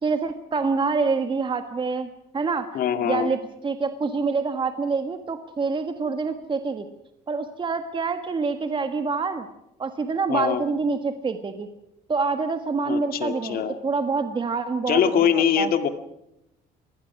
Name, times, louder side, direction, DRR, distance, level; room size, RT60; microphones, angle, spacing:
voice 1, 0.0-2.7 3.0-6.8 7.3-9.5 9.8-11.7 12.1-15.0 15.6-15.7, right 4 dB, 30° right, 7 dB, 1.5 m, -26 dB
voice 2, 2.7-3.3 10.3-10.6 12.9-13.8 14.9-15.9, left 8 dB, 60° left, 8 dB, 2.1 m, -23 dB
26.0 x 19.0 x 6.0 m, 0.86 s
cardioid pair, 110°, 17 cm